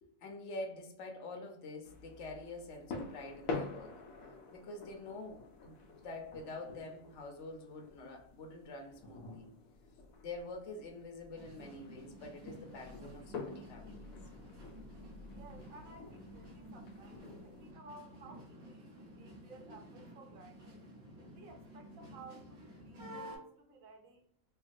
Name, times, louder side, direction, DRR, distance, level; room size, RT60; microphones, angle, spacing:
voice 1, 0.0-4.0 4.5-9.5 10.2-14.2, left 2 dB, 65° left, 2 dB, 0.9 m, -46 dB
sound 1, 1.8-17.7, left 3 dB, 85° left, 1.1 m, -48 dB
sound 2, 11.3-23.4, equal, 60° right, 1.1 m, -52 dB
voice 2, 15.3-20.8 21.3-24.3, right 3 dB, 80° right, 2 dB, 1.1 m, -56 dB
3.2 x 2.2 x 2.5 m, 0.68 s
omnidirectional pair, 1.4 m